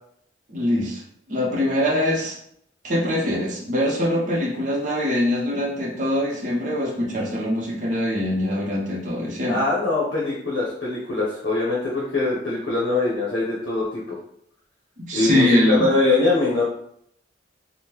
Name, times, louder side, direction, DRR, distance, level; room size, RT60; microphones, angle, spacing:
voice 1, 0.5-1.0 1.3-2.4 2.8-9.6 15.0-15.9, left 1 dB, 40° right, -3 dB, 0.7 m, -23 dB
voice 2, 9.5-14.2 15.1-16.6, left 2 dB, 65° left, -5 dB, 0.7 m, -22 dB
3.5 x 2.1 x 2.9 m, 0.69 s
head